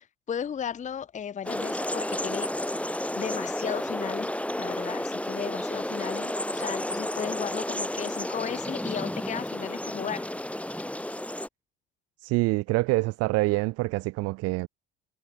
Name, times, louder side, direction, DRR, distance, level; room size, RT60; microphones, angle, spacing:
voice 1, 0.0-2.5 3.2-4.3 4.6-10.3, left 8 dB, 25° left, 0.7 m, -35 dB
sound 1, 1.4-11.5, left 1 dB, 5° left, 2.0 m, -32 dB
voice 2, 12.2-14.7, right 21 dB, 55° right, 0.5 m, -26 dB
hypercardioid pair, 60°, 30 cm